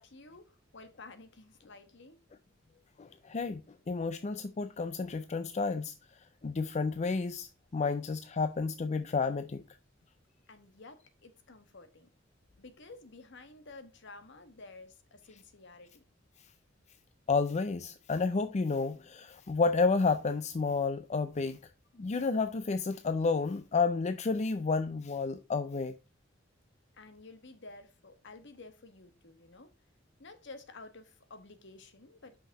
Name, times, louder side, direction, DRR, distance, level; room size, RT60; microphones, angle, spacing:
voice 1, 0.0-2.2 10.5-12.1 12.6-16.0 26.9-29.7 30.2-32.4, left 3 dB, 65° left, 1.2 m, -52 dB
voice 2, 3.0-5.9 6.4-9.6 17.3-21.6 22.0-25.9, left 4 dB, 35° left, 0.4 m, -31 dB
5.8 x 5.5 x 5.7 m
head